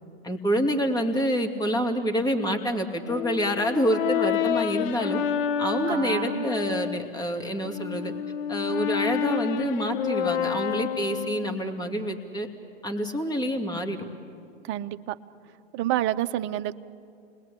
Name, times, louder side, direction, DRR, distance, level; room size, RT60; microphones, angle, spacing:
voice 1, 0.2-5.2 5.6-8.1 8.5-12.5 12.8-14.0, equal, 10° left, 4 dB, 2.6 m, -27 dB
Brass instrument, 3.1-7.1 7.6-11.7, left 8 dB, 60° left, 1.0 m, -29 dB
voice 2, 5.9-6.5 14.6-15.2 15.7-16.7, right 14 dB, 35° right, 11 dB, 0.8 m, -28 dB
30.0 x 20.5 x 8.5 m, 2.5 s
hypercardioid pair, 105°, 33 cm